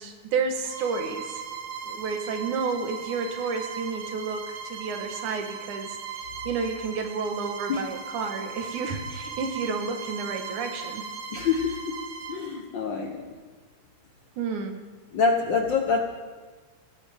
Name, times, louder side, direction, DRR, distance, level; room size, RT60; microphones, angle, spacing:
voice 1, 0.0-1.4 1.8-11.0 14.4-14.8, right 5 dB, 85° right, 5 dB, 2.8 m, -31 dB
Bowed string instrument, 0.6-12.4, right 6 dB, 60° right, 1.3 m, -38 dB
voice 2, 11.3-11.9 12.3-13.3 15.1-16.0, left 5 dB, 70° left, 2 dB, 1.1 m, -26 dB
18.5 x 16.5 x 3.5 m, 1.4 s
omnidirectional pair, 3.4 m